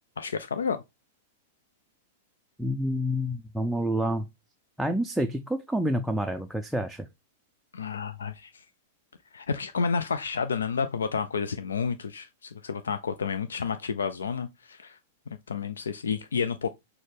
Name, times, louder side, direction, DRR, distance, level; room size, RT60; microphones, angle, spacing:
voice 1, 0.2-0.8 7.7-8.6 9.3-15.0 15.5-16.7, left 5 dB, 80° left, 0.3 m, -30 dB
voice 2, 2.6-4.3 4.8-7.1, equal, 5° right, 0.4 m, -28 dB
6.2 x 2.2 x 3.3 m
hypercardioid pair, 100°, 0 cm